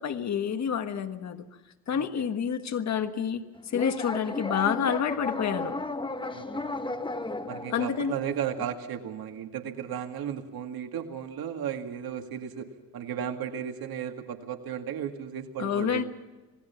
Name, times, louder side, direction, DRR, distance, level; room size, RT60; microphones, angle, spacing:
voice 1, 0.0-1.4 1.9-5.8 7.7-8.1 15.6-16.0, left 7 dB, 45° left, 7 dB, 1.5 m, -28 dB
voice 2, 1.9-2.3 6.3-6.7 7.5-16.0, right 9 dB, 65° right, 5 dB, 2.1 m, -35 dB
sound 1, 3.7-8.6, left 2 dB, 15° left, 1.2 m, -34 dB
27.5 x 19.0 x 5.8 m, 1.2 s
cardioid pair, 140°, 38 cm